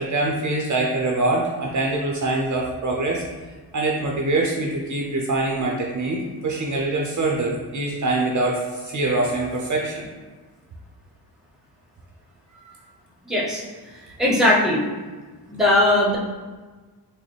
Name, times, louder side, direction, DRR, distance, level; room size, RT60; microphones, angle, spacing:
voice 1, 0.0-3.2 3.7-10.1 12.5-12.6, right 2 dB, 45° right, -1 dB, 0.6 m, -24 dB
voice 2, 13.3-13.6 14.2-14.8 15.5-16.2, left 1 dB, ahead, -4 dB, 0.9 m, -18 dB
4.0 x 2.1 x 3.2 m, 1.3 s
cardioid pair, 90°, 43 cm